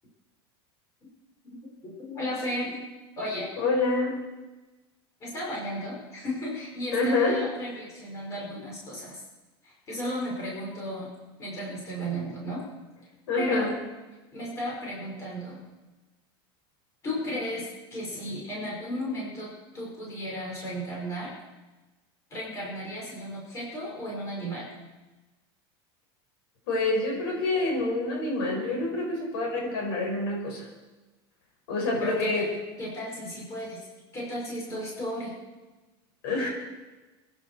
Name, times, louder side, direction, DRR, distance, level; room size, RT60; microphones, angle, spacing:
voice 1, 1.6-2.8 3.2-3.5 5.2-9.2 9.6-11.1 11.4-12.6 13.4-13.7 14.3-15.6 17.0-21.3 22.3-24.7 32.0-32.4 32.8-33.8 34.1-35.4, equal, 20° left, -4 dB, 5.6 m, -34 dB
voice 2, 3.6-4.2 6.9-7.4 13.3-13.7 26.7-30.7 31.7-32.5 36.2-36.5, left 2 dB, 70° left, -1 dB, 6.8 m, -27 dB
26.5 x 10.5 x 4.8 m, 1.1 s
supercardioid pair, 175°, 13 cm